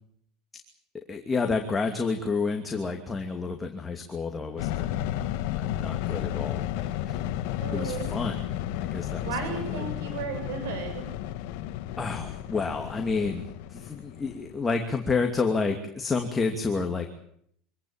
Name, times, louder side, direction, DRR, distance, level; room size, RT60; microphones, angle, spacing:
voice 1, 1.1-5.1 5.6-7.2 7.7-8.4 8.8-9.8 12.0-17.1, left 4 dB, 15° left, 4 dB, 2.7 m, -30 dB
sound 1, 4.6-14.8, left 12 dB, 70° left, 1.8 m, -33 dB
voice 2, 7.6-8.1 9.2-11.1, right 6 dB, 85° right, 6 dB, 7.2 m, -34 dB
25.0 x 17.5 x 8.8 m, 0.68 s
supercardioid pair, 130°, 0 cm